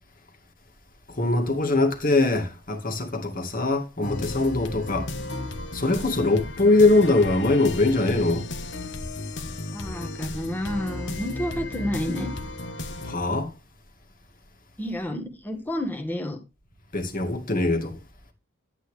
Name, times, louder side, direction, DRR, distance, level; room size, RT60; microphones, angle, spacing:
voice 1, 1.2-5.1 5.7-8.5 13.1-13.5 16.9-17.9, left 2 dB, 40° left, 2.2 m, -22 dB
sound 1, 4.0-13.2, left 2 dB, 55° left, 1.4 m, -34 dB
voice 2, 9.7-12.3 14.8-16.4, equal, 10° left, 1.4 m, -30 dB
11.0 x 8.9 x 3.3 m
head